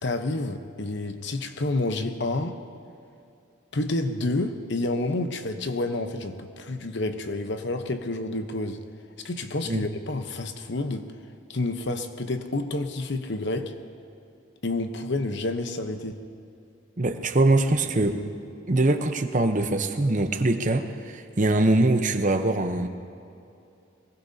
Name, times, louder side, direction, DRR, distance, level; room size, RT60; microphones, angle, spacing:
voice 1, 0.0-2.6 3.7-8.8 9.2-11.1 11.5-13.7 14.6-16.2, left 2 dB, 60° left, 7 dB, 1.0 m, -29 dB
voice 2, 17.0-18.2 18.7-22.9, right 2 dB, 40° right, 6 dB, 0.9 m, -23 dB
22.5 x 21.0 x 2.8 m, 2.7 s
head